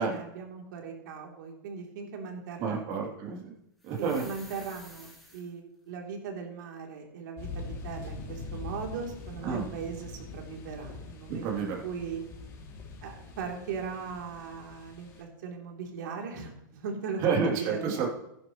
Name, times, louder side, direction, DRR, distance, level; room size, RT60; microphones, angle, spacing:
voice 1, 0.0-3.2 4.0-11.5 11.8-12.2 13.0-17.8, right 5 dB, 65° right, 1 dB, 3.3 m, -39 dB
voice 2, 2.6-3.5 3.8-4.3 9.4-9.7 11.3-11.8 17.2-18.1, right 5 dB, 40° right, -1 dB, 3.1 m, -29 dB
sound 1, 3.8-5.5 10.3-10.4, equal, ahead, 3.4 m, -51 dB
sound 2, 7.4-15.2, left 3 dB, 30° left, 2.8 m, -43 dB
16.0 x 10.5 x 3.2 m, 0.82 s
supercardioid pair, 155°, 11 cm